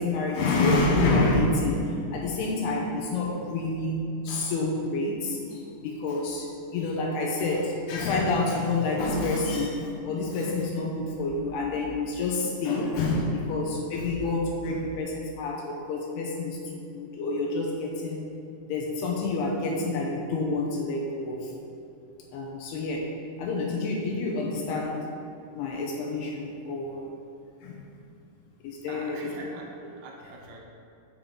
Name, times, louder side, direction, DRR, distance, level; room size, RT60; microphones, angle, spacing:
voice 1, 0.0-18.3 18.7-21.5 22.3-23.1 23.4-25.0 25.5-27.1 27.6-27.8 28.6-29.3, left 2 dB, 75° left, -1 dB, 2.5 m, -28 dB
voice 2, 28.9-30.6, right 3 dB, 85° right, 0 dB, 3.3 m, -43 dB
7.4 x 6.9 x 3.8 m, 2.6 s
omnidirectional pair, 5.1 m